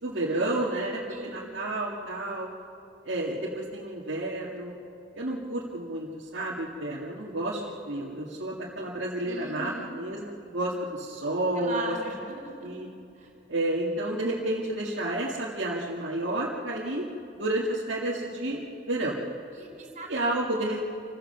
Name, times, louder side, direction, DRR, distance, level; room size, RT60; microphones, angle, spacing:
voice 1, 0.0-2.5 3.0-4.7 5.1-11.9 12.6-12.9 13.5-17.1 17.4-18.6 18.9-19.2 20.1-20.8, right 1 dB, 70° right, -5 dB, 2.2 m, -30 dB
voice 2, 1.1-1.5 9.3-10.0 11.6-12.7 13.1-13.3 19.5-20.7, right 2 dB, 40° right, 1 dB, 3.8 m, -39 dB
27.5 x 16.0 x 6.8 m, 2.6 s
head